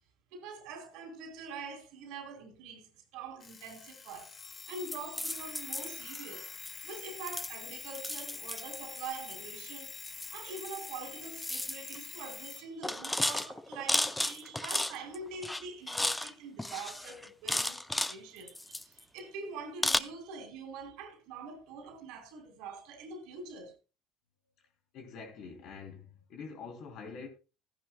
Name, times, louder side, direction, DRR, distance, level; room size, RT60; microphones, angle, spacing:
voice 1, 0.3-4.3 4.7-6.5 6.8-9.9 10.3-23.7, right 4 dB, 75° right, 3.0 m, -44 dB
Alarm, 3.4-12.7, left 5 dB, 35° left, 1.3 m, -46 dB
sound 1, 4.9-6.2 6.7-6.9 7.3-9.4 10.0-11.0 11.2-12.0 12.3-12.5 12.8-15.2 15.4-16.3 16.6-18.2 18.5-19.2 19.8-20.0, left 1 dB, 10° left, 0.5 m, -34 dB
voice 2, 24.9-27.3, left 5 dB, 65° left, 2.9 m, -45 dB
14.5 x 10.5 x 2.2 m
supercardioid pair, 80°, 0 cm